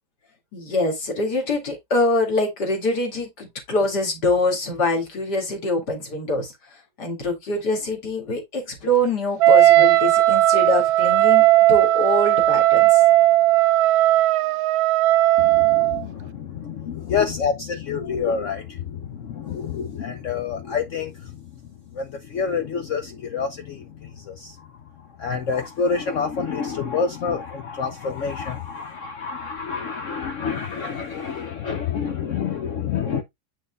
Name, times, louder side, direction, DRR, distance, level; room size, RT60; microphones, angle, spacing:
voice 1, 0.5-13.0, left 1 dB, 55° left, 2.8 m, -24 dB
Wind instrument woodwind instrument, 9.4-16.0, right 15 dB, 80° right, 0.8 m, -16 dB
voice 2, 15.4-21.5 21.9-24.7 25.0-33.2, left 6 dB, 75° left, 0.7 m, -28 dB
8.0 x 6.2 x 2.3 m
omnidirectional pair, 2.2 m